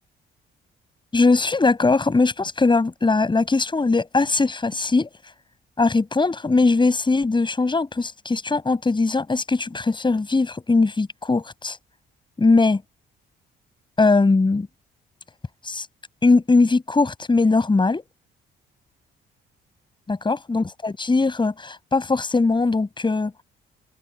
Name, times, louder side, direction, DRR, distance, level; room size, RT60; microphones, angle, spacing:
voice 1, 1.1-5.1 5.8-11.8 12.4-12.8 14.0-14.7 15.7-15.9 16.2-18.1 20.1-23.3, left 3 dB, 25° left, 7.1 m, -20 dB
open air
cardioid pair, 90°, 20 cm